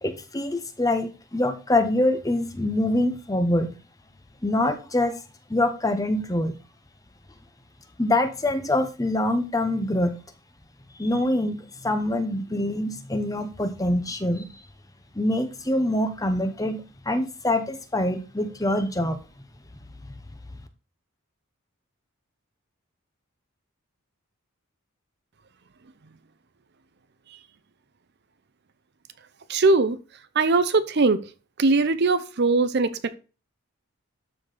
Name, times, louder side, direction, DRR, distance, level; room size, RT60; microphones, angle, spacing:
voice 1, 0.0-3.7 4.4-5.1 5.5-6.5 8.0-10.1 11.0-14.5 15.2-19.2, left 1 dB, 15° left, 0.9 m, -25 dB
voice 2, 29.5-30.0 30.4-31.2 31.6-33.2, right 3 dB, 50° right, 0.6 m, -21 dB
12.5 x 4.3 x 5.0 m
head